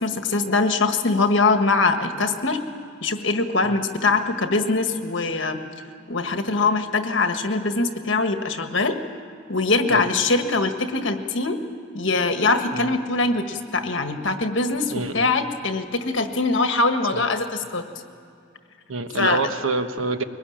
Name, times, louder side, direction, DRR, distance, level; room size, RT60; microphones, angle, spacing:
voice 1, 0.0-2.6 3.0-5.6 6.1-9.0 9.5-11.6 11.9-17.8 19.2-19.4, left 3 dB, 65° left, 6 dB, 1.6 m, -22 dB
voice 2, 14.9-15.3 17.1-17.2 18.9-20.2, right 3 dB, 80° right, 8 dB, 1.2 m, -26 dB
23.0 x 19.5 x 8.8 m, 2.5 s
head